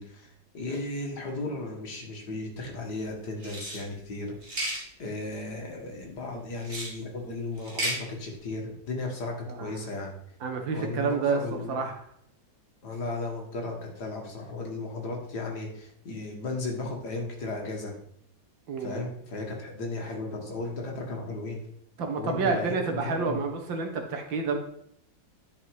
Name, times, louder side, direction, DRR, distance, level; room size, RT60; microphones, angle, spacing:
voice 1, 0.0-4.7 5.0-10.1 10.7-11.8 12.8-18.0 18.8-21.6 22.2-23.4, left 2 dB, 60° left, 1 dB, 2.2 m, -35 dB
sound 1, 3.4-3.8 4.4-4.8 6.6-6.9 7.6-8.0, right 1 dB, 30° right, 2.3 m, -32 dB
voice 2, 10.4-11.4 11.7-11.9 18.7-19.0 22.0-24.6, right 4 dB, 85° right, 3 dB, 2.1 m, -29 dB
10.0 x 4.9 x 4.7 m, 0.69 s
omnidirectional pair, 2.0 m